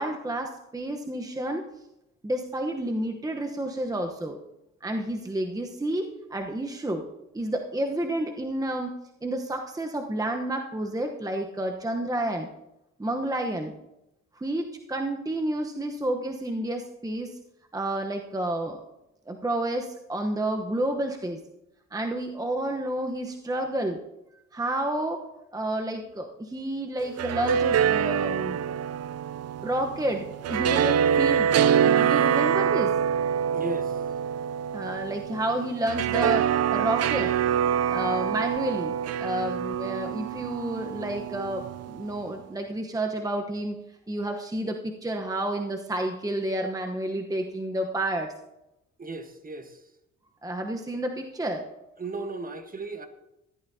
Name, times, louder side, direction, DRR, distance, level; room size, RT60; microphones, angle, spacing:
voice 1, 0.0-1.6 2.2-4.4 4.8-7.0 7.3-8.9 9.2-12.5 13.0-13.7 14.3-17.4 17.7-18.8 19.3-21.4 21.9-24.0 24.5-25.2 25.5-28.8 29.6-31.5 31.8-32.9 34.7-37.3 37.9-43.8 44.1-48.3 50.4-51.6, right 1 dB, 10° right, 1.0 m, -30 dB
sound 1, 27.0-42.2, right 8 dB, 55° right, 0.5 m, -25 dB
voice 2, 33.5-34.0 49.0-49.8 52.0-53.1, right 2 dB, 30° right, 1.3 m, -36 dB
14.5 x 11.5 x 2.8 m
cardioid pair, 90°, 30 cm